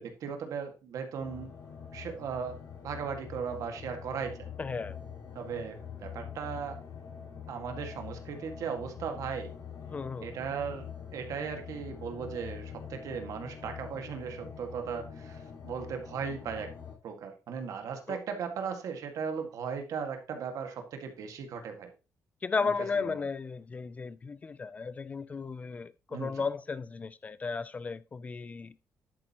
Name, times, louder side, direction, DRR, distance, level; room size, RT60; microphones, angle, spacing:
voice 1, 0.0-1.5 1.9-2.6 2.8-4.5 5.3-6.8 7.5-9.5 10.2-10.9 11.1-16.7 17.0-21.9 22.6-23.1 26.1-26.3, right 6 dB, 70° right, 1.8 m, -37 dB
sound 1, 1.2-16.9, left 7 dB, 65° left, 4.4 m, -45 dB
voice 2, 4.6-5.0 9.9-10.3 18.1-18.2 22.4-28.7, left 4 dB, 25° left, 0.3 m, -34 dB
10.5 x 8.8 x 2.9 m
cardioid pair, 175°, 6 cm